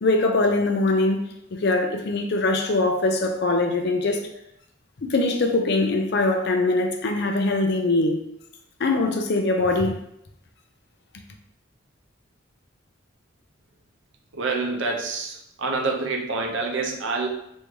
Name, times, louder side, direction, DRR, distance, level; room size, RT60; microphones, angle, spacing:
voice 1, 0.0-4.2 5.0-8.2 8.8-10.0, left 2 dB, 55° left, 0.4 m, -22 dB
voice 2, 14.3-17.3, right 3 dB, 65° right, 0.6 m, -27 dB
3.1 x 2.6 x 3.4 m
head